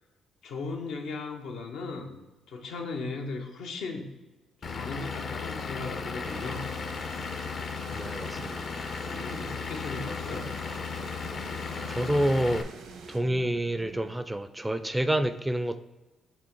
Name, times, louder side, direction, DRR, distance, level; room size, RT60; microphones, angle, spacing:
voice 1, 0.4-2.2 2.5-4.1 4.6-6.7 9.1-10.5, left 3 dB, 80° left, 2 dB, 0.9 m, -37 dB
Vehicle / Engine, 4.6-12.6, left 5 dB, 50° left, 0.6 m, -35 dB
sound 1, 6.3-13.2, right 4 dB, 90° right, 0.9 m, -50 dB
voice 2, 7.9-8.7 11.9-12.7 13.1-15.8, right 1 dB, 10° right, 11 dB, 0.4 m, -28 dB
sound 2, 8.3-14.1, right 3 dB, 65° right, 0.6 m, -51 dB
6.1 x 3.4 x 4.5 m, 1.1 s
cardioid pair, 90°, 0 cm